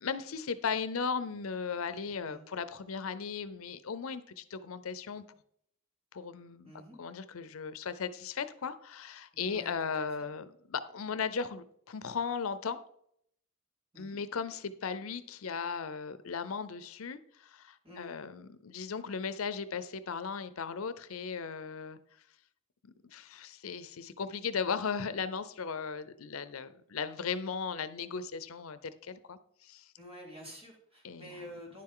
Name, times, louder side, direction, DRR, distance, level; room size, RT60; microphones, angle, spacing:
voice 1, 0.0-5.2 6.1-6.7 7.0-12.8 14.0-22.0 22.8-29.9 31.0-31.4, left 5 dB, 75° left, 14 dB, 0.6 m, -37 dB
voice 2, 6.6-7.0 9.3-10.3 13.9-14.2 17.8-18.1 30.0-31.8, equal, 25° right, -3 dB, 3.0 m, -49 dB
10.5 x 7.5 x 3.8 m, 0.68 s
head